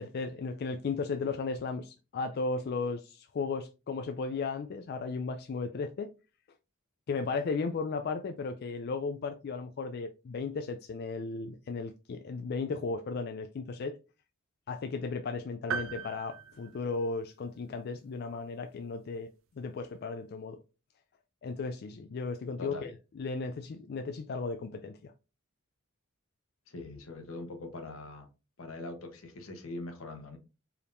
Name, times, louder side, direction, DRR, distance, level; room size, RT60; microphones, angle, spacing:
voice 1, 0.0-6.1 7.1-14.0 14.7-19.3 19.6-20.6 21.4-22.9 23.2-25.1, left 4 dB, 50° left, 0.4 m, -35 dB
sound 1, 15.7-17.5, right 6 dB, 70° right, 0.5 m, -38 dB
voice 2, 22.6-22.9 26.7-28.3 28.6-30.4, left 2 dB, 80° left, 1.1 m, -42 dB
4.7 x 3.5 x 2.6 m
head